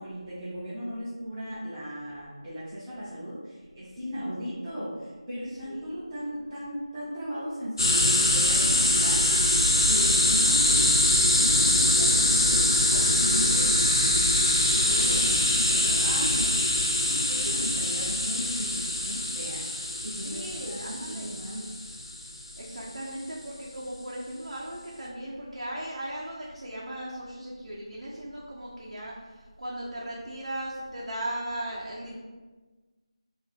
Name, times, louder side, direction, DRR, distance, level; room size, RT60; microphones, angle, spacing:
voice 1, 0.0-9.5 9.8-14.3 14.6-16.6 17.0-19.7 20.0-21.6, equal, 15° right, -12 dB, 0.5 m, -36 dB
voice 2, 5.7-6.1 17.4-17.6 20.2-21.4 22.6-29.1 29.6-32.2, right 1 dB, 75° right, -5 dB, 0.6 m, -37 dB
sound 1, 7.8-22.3, left 1 dB, 40° left, 0.5 m, -23 dB
2.4 x 2.3 x 4.0 m, 1.3 s
figure-of-eight pair, 170°, 3 cm